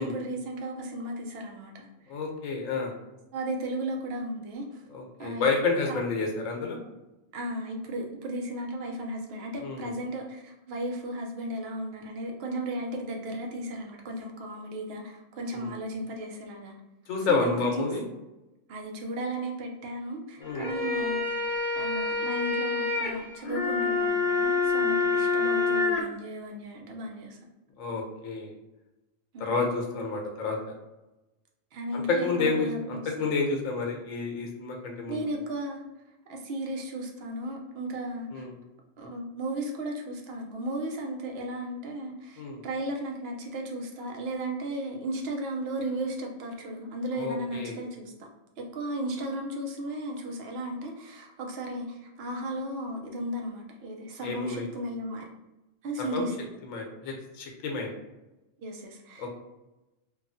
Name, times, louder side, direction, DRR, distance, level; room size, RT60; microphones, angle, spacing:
voice 1, 0.0-1.9 3.3-4.8 5.2-5.5 5.9-6.0 7.3-16.7 17.3-17.9 18.7-21.3 21.7-27.4 29.3-29.6 31.7-33.3 35.1-35.9 36.3-38.5 39.0-48.1 48.6-55.2 55.8-56.5 58.6-59.3, right 1 dB, 60° right, 1 dB, 0.7 m, -35 dB
voice 2, 2.1-2.9 4.9-6.8 9.6-9.9 15.5-15.7 17.1-18.0 20.4-20.7 27.8-28.5 29.4-30.6 31.9-35.2 38.3-38.5 42.4-42.6 47.1-47.8 54.2-54.7 56.1-56.3 56.7-57.9 59.2-59.3, left 4 dB, 90° left, 1 dB, 1.0 m, -30 dB
sound 1, 20.4-26.0, left 4 dB, 50° left, 0.7 m, -27 dB
2.9 x 2.3 x 2.5 m, 1.0 s
omnidirectional pair, 1.3 m